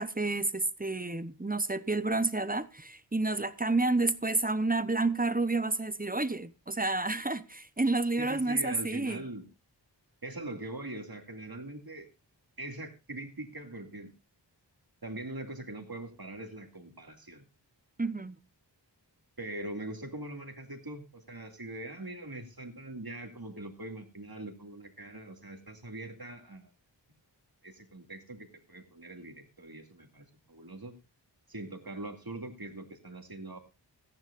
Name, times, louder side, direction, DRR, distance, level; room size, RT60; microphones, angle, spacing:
voice 1, 0.0-9.2 18.0-18.4, right 2 dB, 20° right, 0.8 m, -30 dB
voice 2, 8.2-9.5 10.2-12.1 12.6-14.1 15.0-17.4 19.4-26.7 27.6-30.9 31.5-33.6, right 2 dB, 55° right, 2.4 m, -42 dB
17.0 x 14.0 x 2.5 m
wide cardioid pair, 45°, 44 cm